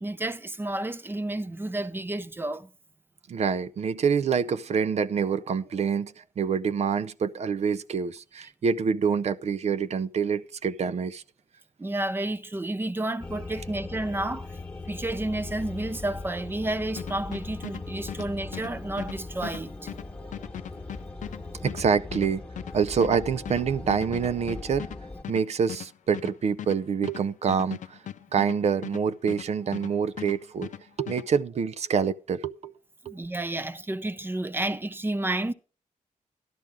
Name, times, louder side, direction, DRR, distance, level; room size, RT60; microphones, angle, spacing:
voice 1, 0.0-2.7 11.8-14.5 14.9-19.9 33.0-35.5, right 1 dB, 15° right, 0.6 m, -31 dB
voice 2, 3.3-11.2 21.6-22.4 22.7-24.9 25.3-28.0 28.3-30.7 31.0-32.7 33.1-33.2, right 6 dB, 55° right, 0.5 m, -26 dB
sound 1, 13.2-25.2, left 3 dB, 10° left, 1.2 m, -39 dB
sound 2, 17.0-29.9 30.2-31.3, left 10 dB, 70° left, 0.6 m, -39 dB
12.0 x 11.5 x 3.6 m
wide cardioid pair, 135°, 13 cm